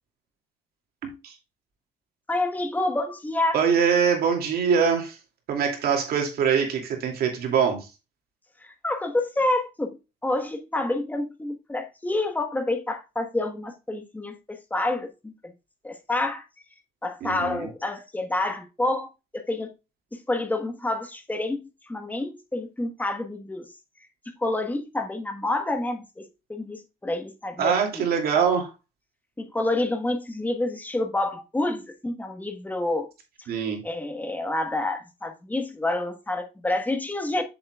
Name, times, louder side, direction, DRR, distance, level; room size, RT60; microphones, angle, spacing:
voice 1, 1.0-1.3 3.5-5.2 5.5-7.9 17.2-17.7 27.6-28.7 33.5-33.8, right 7 dB, 65° right, 2.6 m, -23 dB
voice 2, 2.3-3.6 8.6-10.0 10.2-15.1 15.8-16.4 17.0-19.7 20.3-21.6 21.9-23.7 24.4-28.1 28.3-28.5 29.4-33.1 33.8-37.4, left 2 dB, 10° left, 1.3 m, -28 dB
7.8 x 6.9 x 2.4 m
cardioid pair, 110°, 17 cm